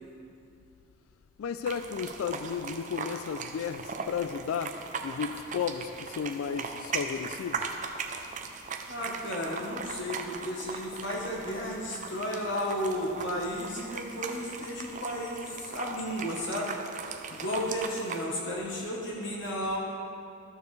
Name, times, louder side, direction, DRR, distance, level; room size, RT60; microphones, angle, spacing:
voice 1, 1.4-7.7, left 7 dB, 80° left, 10 dB, 0.3 m, -34 dB
sound 1, 1.7-18.3, right 5 dB, 35° right, 0.4 m, -39 dB
voice 2, 8.9-16.7 17.3-19.8, equal, 55° left, -3 dB, 1.0 m, -33 dB
12.5 x 6.8 x 3.2 m, 2.6 s
head